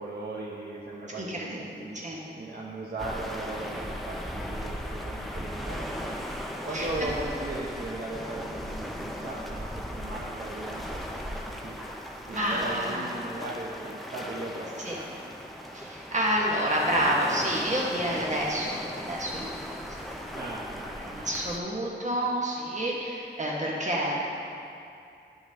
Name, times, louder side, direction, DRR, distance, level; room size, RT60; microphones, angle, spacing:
voice 1, 0.0-6.3 6.6-11.9 12.3-15.2 20.3-21.3, right 2 dB, 55° right, -6 dB, 0.9 m, -38 dB
voice 2, 1.2-1.6 1.9-2.2 6.7-6.9 12.3-13.1 14.8-15.0 15.7-20.4 21.0-24.2, equal, 40° right, -4 dB, 1.6 m, -29 dB
sound 1, 3.0-21.6, equal, ahead, 0.7 m, -37 dB
11.0 x 5.3 x 3.6 m, 2.6 s
wide cardioid pair, 80°, 19 cm